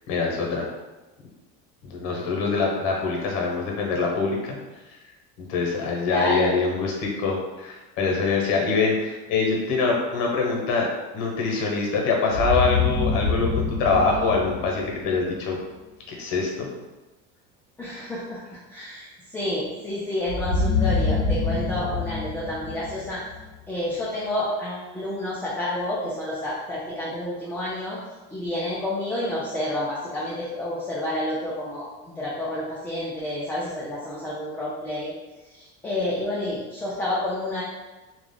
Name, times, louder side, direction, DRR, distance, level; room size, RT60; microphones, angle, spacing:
voice 1, 0.1-0.7 1.8-4.6 5.4-10.9 11.1-15.6 16.1-16.7, left 4 dB, 65° left, -1 dB, 0.9 m, -24 dB
voice 2, 6.1-6.6 17.8-18.4 18.7-23.2 23.7-28.0 28.3-31.9 32.2-35.1 35.5-37.6, left 1 dB, 5° left, -8 dB, 0.3 m, -29 dB
sound 1, 12.3-15.3 20.3-23.5, left 3 dB, 30° left, 0.9 m, -26 dB
2.3 x 2.1 x 3.6 m, 1.1 s
cardioid pair, 130°, 34 cm